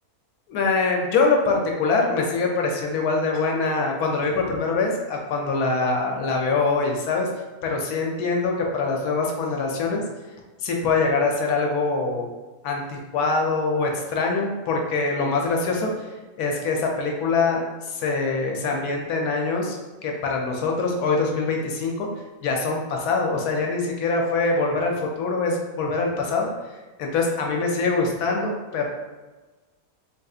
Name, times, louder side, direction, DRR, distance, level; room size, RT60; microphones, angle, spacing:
voice 1, 0.5-7.3 7.6-10.0 10.6-12.3 12.6-16.1 16.4-19.8 20.0-22.1 22.4-26.5 27.0-28.9, left 3 dB, 80° left, 1 dB, 1.1 m, -24 dB
3.8 x 2.7 x 2.3 m, 1.2 s
omnidirectional pair, 1.7 m